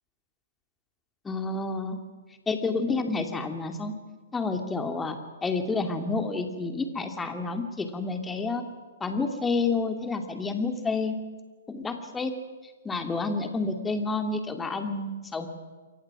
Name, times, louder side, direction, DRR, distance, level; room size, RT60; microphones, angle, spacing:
voice 1, 1.2-2.0 2.5-3.9 4.3-8.7 9.0-11.2 11.7-12.3 12.8-15.5, left 3 dB, 10° left, 6 dB, 2.6 m, -29 dB
28.5 x 23.5 x 6.1 m, 1.4 s
figure-of-eight pair, 120°, 0 cm